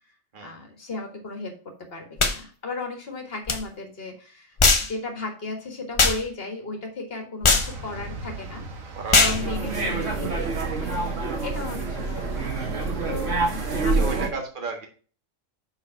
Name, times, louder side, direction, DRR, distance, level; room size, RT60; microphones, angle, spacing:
voice 1, 0.4-1.5 1.8-8.7 9.2-12.7 13.1-14.4, left 3 dB, 45° left, 3 dB, 1.9 m, -35 dB
sound 1, 2.2-2.4 3.5-3.6 4.6-4.9 6.0-6.2 7.4-7.7 9.1-9.4, left 3 dB, 30° left, 0.6 m, -19 dB
sound 2, 7.5-14.1, right 2 dB, 80° right, 1.7 m, -39 dB
sound 3, 9.2-14.3, right 3 dB, 65° right, 2.0 m, -27 dB
voice 2, 13.7-14.9, right 4 dB, 40° right, 3 dB, 1.7 m, -33 dB
6.5 x 4.9 x 5.6 m, 0.40 s
omnidirectional pair, 1.4 m